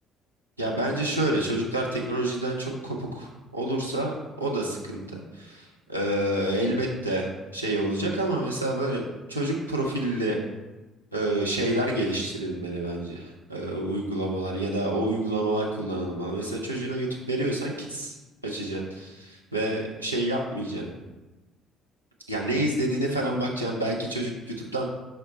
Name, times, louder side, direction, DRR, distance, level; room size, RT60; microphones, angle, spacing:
voice 1, 0.6-9.0 9.3-10.4 11.1-18.1 18.4-20.8 22.3-24.9, right 1 dB, 90° right, -3 dB, 0.5 m, -28 dB
5.5 x 2.2 x 3.8 m, 1.1 s
figure-of-eight pair, 50°, 0 cm